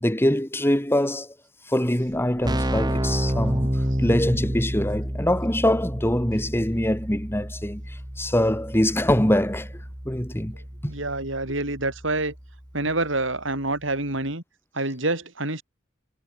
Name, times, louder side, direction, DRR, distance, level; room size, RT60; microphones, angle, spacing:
voice 1, 0.0-1.3 1.7-3.7 4.0-9.7 10.1-10.6, left 1 dB, 10° left, 2.1 m, -23 dB
Keyboard (musical), 1.9-2.0 2.1-12.8, equal, 20° right, 2.5 m, -30 dB
voice 2, 10.9-12.3 12.7-14.4 14.7-15.6, right 2 dB, 70° right, 7.1 m, -27 dB
head